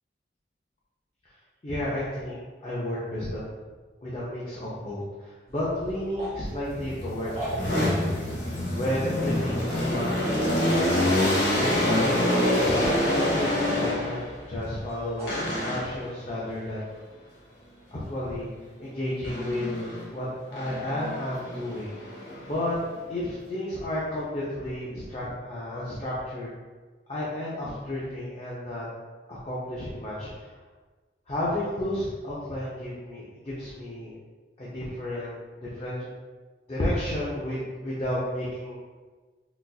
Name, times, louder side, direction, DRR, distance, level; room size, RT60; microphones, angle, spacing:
voice 1, 1.6-3.5 4.0-8.3 8.7-11.0 11.5-12.2 12.6-14.2 14.5-16.8 17.9-18.5 18.8-21.9 22.4-22.8 23.1-26.5 27.1-28.9 29.3-30.5 31.3-34.1 34.6-36.1 36.7-38.8, left 1 dB, 35° left, -8 dB, 0.5 m, -32 dB
sound 1, 5.5-15.4, right 1 dB, 35° right, 0.9 m, -42 dB
sound 2, 6.7-14.4 15.3-16.1 19.2-20.1 20.5-22.9, left 1 dB, 75° left, 1.1 m, -26 dB
3.9 x 2.4 x 2.3 m, 1.4 s
head